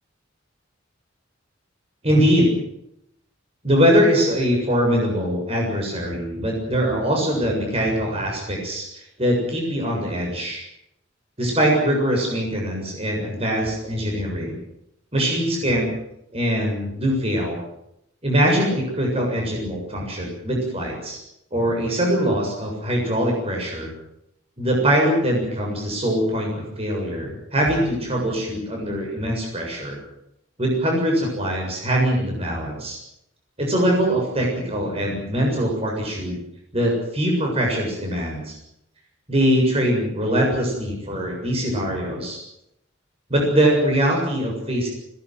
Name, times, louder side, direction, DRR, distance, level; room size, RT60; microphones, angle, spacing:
voice 1, 2.0-2.5 3.6-8.9 9.2-10.6 11.4-14.6 15.1-15.9 16.3-17.6 18.2-21.2 21.5-23.9 24.6-30.0 30.6-33.0 33.6-36.4 36.7-38.6 39.3-42.4 43.3-44.9, equal, 30° right, 0 dB, 7.3 m, -22 dB
21.5 x 19.0 x 9.3 m, 0.79 s
head